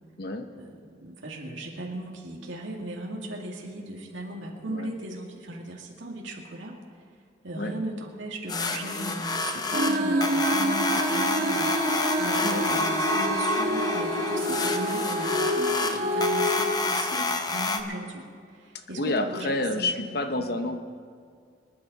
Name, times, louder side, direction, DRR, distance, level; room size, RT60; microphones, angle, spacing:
voice 1, 0.5-6.8 7.4-20.6, right 1 dB, 90° right, -1 dB, 2.2 m, -37 dB
sound 1, 8.5-17.8, left 3 dB, 20° left, 0.8 m, -29 dB
sound 2, 9.7-16.7, equal, 50° right, 3.8 m, -27 dB
voice 2, 18.7-20.8, left 2 dB, 55° left, 7 dB, 1.0 m, -29 dB
25.5 x 9.8 x 4.1 m, 2.1 s
head